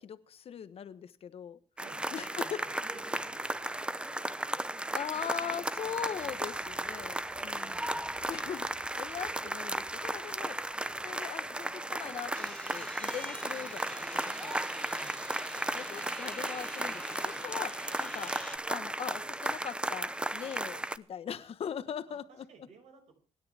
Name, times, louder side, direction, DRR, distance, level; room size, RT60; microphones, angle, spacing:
voice 1, 0.0-1.6 2.1-2.5 4.9-7.9 8.3-8.7 8.9-10.6 11.0-14.6 15.7-18.3 18.7-22.4, left 8 dB, 60° left, 13 dB, 1.2 m, -41 dB
sound 1, 1.8-21.0, right 1 dB, 10° right, 0.7 m, -35 dB
voice 2, 1.8-2.7 2.9-3.8 7.4-8.1 8.7-8.9 14.9-15.7 22.1-23.0, right 5 dB, 75° right, 4 dB, 5.8 m, -57 dB
sound 2, 12.3-18.6, left 1 dB, 10° left, 1.1 m, -48 dB
26.0 x 10.0 x 3.5 m, 0.36 s
cardioid pair, 105°, 11 cm